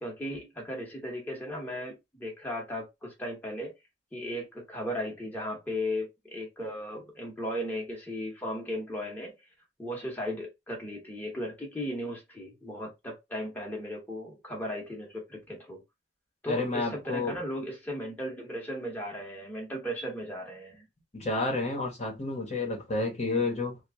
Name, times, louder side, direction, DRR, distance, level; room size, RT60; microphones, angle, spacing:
voice 1, 0.0-3.7 4.1-9.3 9.8-15.8 16.4-20.8, equal, 10° left, 1.0 m, -36 dB
voice 2, 16.5-17.4 21.1-23.8, left 3 dB, 40° left, 1.1 m, -30 dB
3.0 x 2.3 x 3.5 m
head